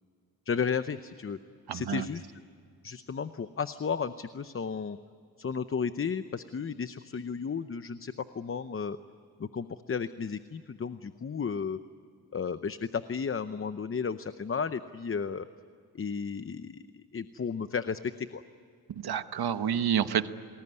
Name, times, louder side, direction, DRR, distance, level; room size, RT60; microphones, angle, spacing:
voice 1, 0.5-1.4 1.7-2.4 2.8-5.0 5.4-9.0 9.4-11.8 12.3-15.5 15.9-18.4, left 6 dB, 35° left, 11 dB, 0.7 m, -33 dB
voice 2, 1.7-2.1 19.0-20.3, right 8 dB, 85° right, 11 dB, 1.2 m, -28 dB
30.0 x 20.0 x 9.7 m, 2.4 s
wide cardioid pair, 110°, 37 cm